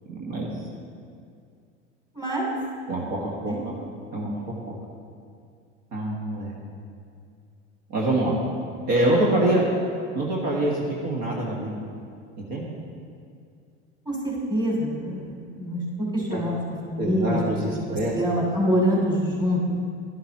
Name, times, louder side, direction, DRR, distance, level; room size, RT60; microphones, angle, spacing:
voice 1, 0.1-0.5 2.9-3.8 4.1-4.7 5.9-6.5 7.9-8.4 8.9-9.6 10.1-11.7 12.5-12.6 16.3-16.4 17.0-18.1, right 1 dB, 50° right, -3 dB, 1.8 m, -25 dB
voice 2, 2.1-2.5 3.4-3.6 14.0-16.5 16.9-17.4 17.7-17.8 18.1-19.6, equal, 10° right, -3 dB, 2.9 m, -25 dB
11.5 x 11.5 x 3.0 m, 2.3 s
hypercardioid pair, 80°, 37 cm